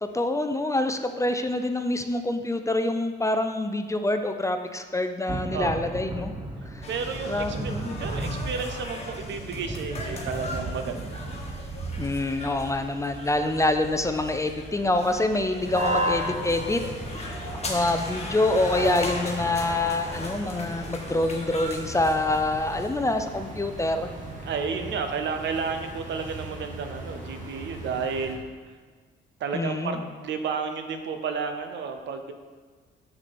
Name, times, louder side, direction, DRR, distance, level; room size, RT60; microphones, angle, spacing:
voice 1, 0.0-6.3 6.7-6.9 7.3-8.0 12.0-16.8 17.1-24.1 29.5-30.1, left 2 dB, 15° left, 7 dB, 0.5 m, -26 dB
Thunder / Rain, 5.3-24.3, right 2 dB, 25° right, 0.9 m, -39 dB
sound 1, 6.8-22.9, left 2 dB, 30° left, 1.2 m, -39 dB
voice 2, 6.9-7.7 8.0-11.2 18.8-18.9 24.4-28.4 29.4-32.3, right 5 dB, 70° right, 7 dB, 0.7 m, -31 dB
sound 2, 15.6-28.4, right 1 dB, 40° right, 1.7 m, -36 dB
6.1 x 6.0 x 4.2 m, 1.5 s
cardioid pair, 90°, 20 cm